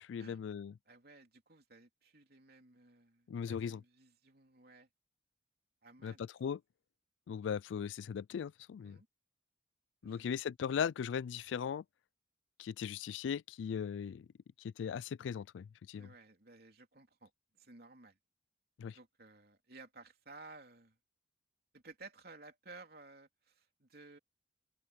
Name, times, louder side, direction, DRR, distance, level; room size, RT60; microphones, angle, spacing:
voice 1, 0.1-0.7 3.3-3.8 6.0-6.6 7.3-9.0 10.0-11.8 12.6-14.3 14.6-16.1 18.8-19.0, left 7 dB, 80° left, 0.3 m, -38 dB
voice 2, 0.9-4.9 5.8-6.2 8.8-9.1 10.0-10.3 15.9-18.2 18.9-21.0 21.7-24.2, right 3 dB, 55° right, 3.5 m, -56 dB
open air
head